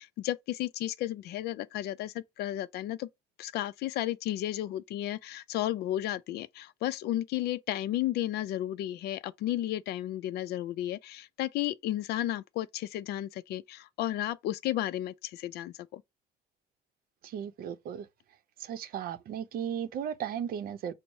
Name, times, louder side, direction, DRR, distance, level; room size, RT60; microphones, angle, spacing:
voice 1, 0.0-3.1 3.4-16.0, left 13 dB, 75° left, 0.4 m, -33 dB
voice 2, 17.2-18.1 18.6-20.9, right 9 dB, 60° right, 0.6 m, -35 dB
4.6 x 2.0 x 3.9 m
cardioid pair, 110°, 17 cm